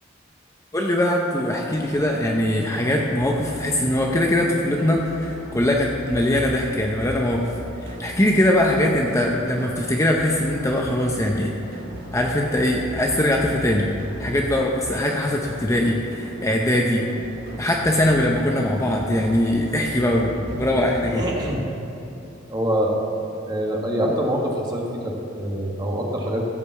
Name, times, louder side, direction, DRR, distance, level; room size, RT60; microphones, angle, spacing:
voice 1, 0.7-7.4 8.0-11.5 12.1-13.9 14.2-17.0 17.6-21.2, left 1 dB, 15° left, 0 dB, 0.7 m, -21 dB
sound 1, 1.8-21.2, equal, 85° right, 2.6 m, -38 dB
voice 2, 21.0-21.6 22.5-26.4, equal, 20° right, -1 dB, 1.6 m, -25 dB
15.0 x 5.1 x 7.2 m, 2.9 s
head